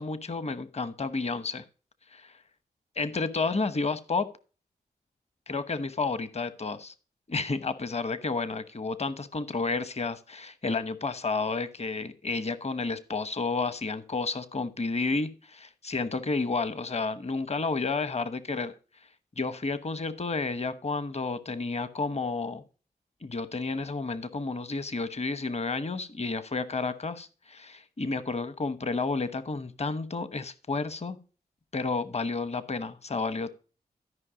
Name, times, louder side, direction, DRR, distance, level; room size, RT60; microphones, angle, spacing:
voice 1, 0.0-1.6 2.1-2.3 3.0-4.3 5.5-6.9 7.3-18.7 19.4-22.6 23.2-31.2 31.7-33.5, left 3 dB, 40° left, 14 dB, 1.0 m, -31 dB
13.0 x 5.4 x 5.0 m, 0.36 s
cardioid pair, 50°, 17 cm